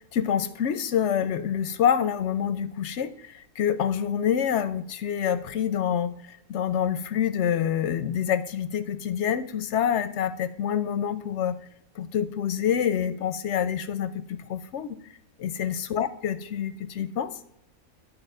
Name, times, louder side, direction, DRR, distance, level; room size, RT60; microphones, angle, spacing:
voice 1, 0.1-6.1 6.5-11.6 12.0-15.0 15.4-17.3, left 8 dB, 65° left, 13 dB, 0.8 m, -27 dB
11.5 x 4.2 x 5.4 m, 0.79 s
omnidirectional pair, 1.5 m